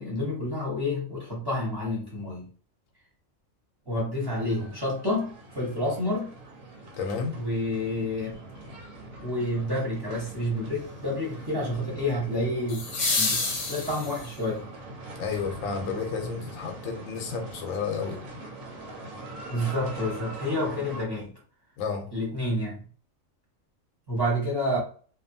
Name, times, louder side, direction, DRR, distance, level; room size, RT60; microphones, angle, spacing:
voice 1, 0.0-2.5 3.9-6.3 7.3-8.4 9.2-12.9 13.1-14.7 19.5-21.4 22.1-22.8 24.1-24.8, left 1 dB, 20° right, -4 dB, 1.0 m, -29 dB
sound 1, 4.2-21.0, right 2 dB, 90° right, 1.1 m, -43 dB
voice 2, 7.0-7.4 15.2-18.2 21.8-22.1, left 5 dB, 80° left, 4 dB, 1.0 m, -31 dB
sound 2, 7.0-7.1 12.7-14.5 16.7-16.8, left 3 dB, 55° left, 0.4 m, -29 dB
2.6 x 2.3 x 2.6 m, 0.42 s
omnidirectional pair, 1.4 m